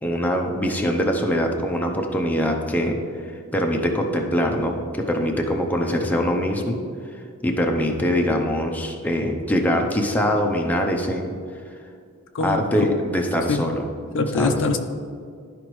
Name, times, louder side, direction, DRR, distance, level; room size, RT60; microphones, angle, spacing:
voice 1, 0.0-3.0 3.5-6.8 7.4-11.3 12.4-13.9 14.3-14.6, equal, 5° left, 1 dB, 0.6 m, -23 dB
voice 2, 14.1-14.8, left 3 dB, 60° left, 6 dB, 0.5 m, -23 dB
12.0 x 5.1 x 3.1 m, 2.2 s
head